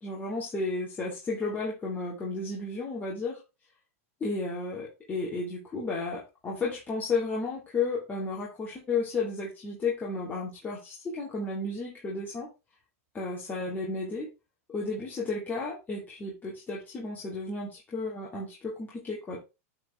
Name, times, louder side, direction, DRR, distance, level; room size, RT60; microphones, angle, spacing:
voice 1, 0.0-3.4 4.2-12.5 13.1-14.3 14.7-19.4, left 3 dB, 20° left, -4 dB, 2.8 m, -33 dB
9.3 x 4.9 x 3.4 m, 0.27 s
hypercardioid pair, 115°, 8 cm